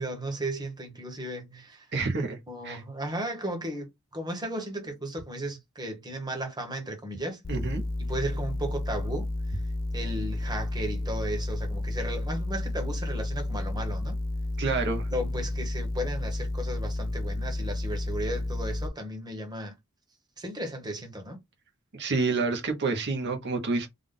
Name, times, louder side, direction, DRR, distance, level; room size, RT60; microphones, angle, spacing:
voice 1, 0.0-1.9 2.5-7.4 8.0-9.6 9.9-14.2 15.1-19.7 20.4-21.4, right 1 dB, 20° right, 1.2 m, -35 dB
voice 2, 1.9-2.4 2.6-2.8 7.5-7.8 14.6-15.1 21.9-23.9, right 3 dB, 55° right, 1.1 m, -28 dB
sound 1, 7.4-18.9, left 1 dB, 45° left, 0.6 m, -31 dB
3.6 x 2.5 x 3.8 m
head